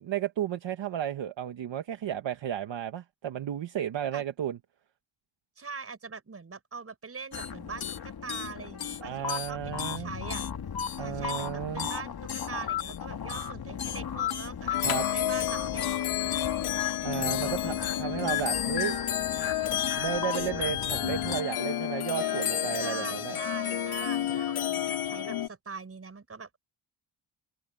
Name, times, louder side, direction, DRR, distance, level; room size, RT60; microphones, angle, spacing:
voice 1, 0.0-4.6 9.0-10.1 11.0-11.9 14.8-15.0 17.0-19.0 20.0-23.4, right 10 dB, 60° right, 1.3 m, -33 dB
voice 2, 5.6-10.4 11.0-16.4 17.2-17.6 22.8-26.6, right 5 dB, 30° right, 7.0 m, -42 dB
sound 1, 7.3-21.4, left 8 dB, 45° left, 2.2 m, -35 dB
sound 2, 14.7-25.5, left 11 dB, 80° left, 3.0 m, -30 dB
wide cardioid pair, 180°, 49 cm